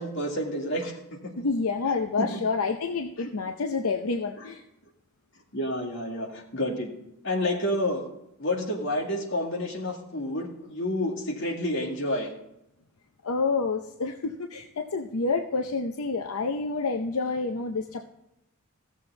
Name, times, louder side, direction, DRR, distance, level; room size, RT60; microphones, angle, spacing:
voice 1, 0.0-1.2 3.2-3.3 4.4-4.5 5.5-6.9 7.2-8.1 8.4-12.3, left 1 dB, 60° left, 0 dB, 2.1 m, -29 dB
voice 2, 1.4-4.6 13.2-18.1, left 4 dB, 80° left, 5 dB, 0.7 m, -28 dB
15.0 x 7.3 x 3.9 m, 0.83 s
head